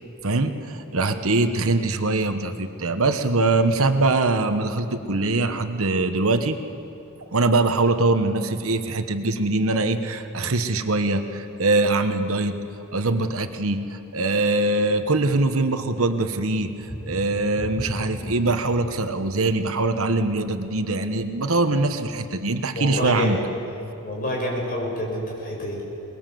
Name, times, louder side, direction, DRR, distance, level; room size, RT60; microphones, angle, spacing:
voice 1, 0.2-6.6 7.2-12.6 12.9-23.4, right 2 dB, 65° right, 8 dB, 1.2 m, -23 dB
sound 1, 16.7-22.2 22.6-22.8 23.3-23.4, left 1 dB, 70° left, 4.7 m, -37 dB
voice 2, 22.7-23.4 24.0-25.8, left 1 dB, 40° left, -1 dB, 6.2 m, -27 dB
23.5 x 21.0 x 7.7 m, 2.7 s
head